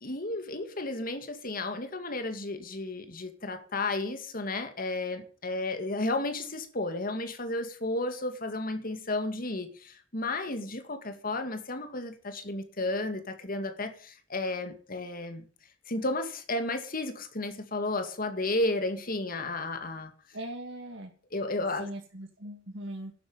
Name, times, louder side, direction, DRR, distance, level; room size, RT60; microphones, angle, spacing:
voice 1, 0.0-15.4 15.9-20.1 21.3-21.9, left 2 dB, 50° left, 2.2 m, -33 dB
voice 2, 20.3-21.1 21.7-23.1, right 1 dB, 75° right, 2.6 m, -40 dB
11.5 x 8.5 x 8.9 m
head